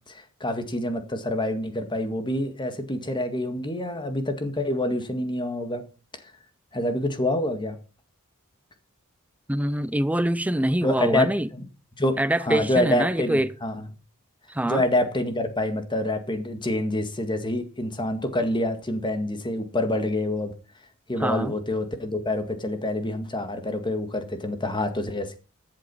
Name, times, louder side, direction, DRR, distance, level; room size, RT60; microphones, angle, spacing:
voice 1, 0.0-5.8 6.7-7.8 10.8-11.6 12.0-13.8 14.6-20.5 21.1-25.4, left 1 dB, 20° left, 1.9 m, -27 dB
voice 2, 9.5-11.5 12.2-13.5 14.5-14.8 21.2-21.5, right 1 dB, 5° right, 0.5 m, -24 dB
14.0 x 7.7 x 5.5 m
head